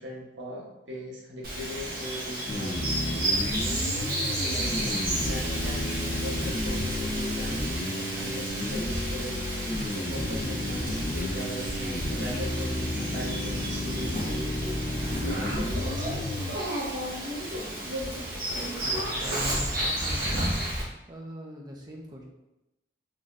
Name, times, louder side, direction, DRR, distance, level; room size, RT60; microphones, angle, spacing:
voice 1, 0.0-2.8 3.1-3.5 4.0-14.5 15.2-16.4, equal, 90° right, -4 dB, 1.1 m, -40 dB
Bird vocalization bird call bird song, 1.4-20.8, right 1 dB, 55° right, 1.2 m, -32 dB
sound 1, 2.5-16.5, left 1 dB, 20° left, 0.3 m, -32 dB
voice 2, 18.8-20.8 21.1-22.2, equal, 25° right, -1 dB, 0.6 m, -41 dB
3.9 x 3.1 x 2.5 m, 0.93 s
head